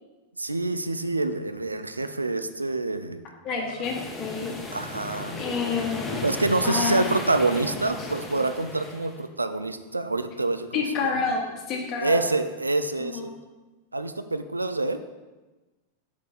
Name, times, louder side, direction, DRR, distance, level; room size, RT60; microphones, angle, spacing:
voice 1, 0.4-3.2 3.5-3.7 4.7-5.4 6.2-11.1 12.0-13.3 13.9-15.0, right 2 dB, 80° right, 10 dB, 0.3 m, -27 dB
voice 2, 3.4-4.5 5.3-6.2 6.6-7.0 10.7-12.2 13.0-13.3, left 5 dB, 35° left, 1 dB, 1.2 m, -28 dB
sound 1, 3.8-9.2, left 2 dB, 15° left, 0.9 m, -35 dB
5.1 x 4.3 x 5.2 m, 1.2 s
figure-of-eight pair, 90°, 0 cm